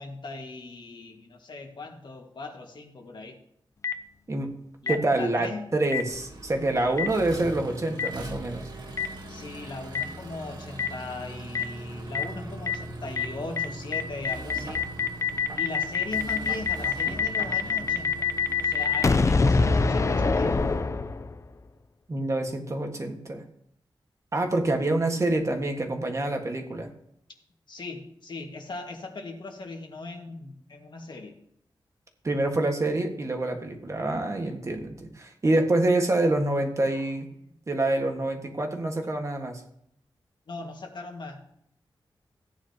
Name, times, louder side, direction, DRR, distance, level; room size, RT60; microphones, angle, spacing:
voice 1, 0.0-3.4 4.8-5.7 9.3-14.9 15.6-20.7 27.7-31.4 34.4-34.5 37.0-37.1 37.4-37.5 40.5-41.4, left 3 dB, 60° left, 3 dB, 1.8 m, -39 dB
Boom, 3.8-3.9 4.9-5.0 5.9-6.0 7.0-7.1 8.0-8.1 9.0-9.1 9.9-10.0 10.8-10.9 11.5-11.6 12.1-12.2 12.7-12.8 13.2-13.3 13.6-13.7 13.9-21.5, left 5 dB, 35° left, 0.5 m, -24 dB
voice 2, 4.9-8.6 22.1-23.4 24.3-26.9 32.2-37.3 37.7-39.6, right 2 dB, 35° right, 3 dB, 1.6 m, -26 dB
Accelerating revving vroom, 6.1-19.3, right 1 dB, 55° right, 2.1 m, -40 dB
15.0 x 9.6 x 2.9 m, 0.71 s
wide cardioid pair, 120°, 9 cm